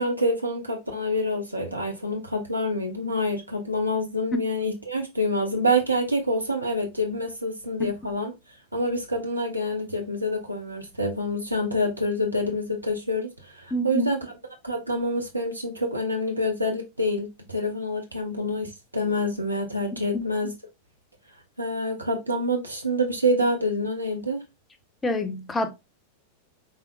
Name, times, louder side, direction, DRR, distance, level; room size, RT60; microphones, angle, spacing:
voice 1, 0.0-8.3 8.7-14.2 14.6-20.5 21.6-24.4, equal, 85° right, 0.8 m, -27 dB
voice 2, 13.7-14.1 20.1-20.2 25.0-25.7, left 1 dB, 15° left, 0.8 m, -26 dB
5.6 x 3.5 x 2.4 m
figure-of-eight pair, 90°, 0 cm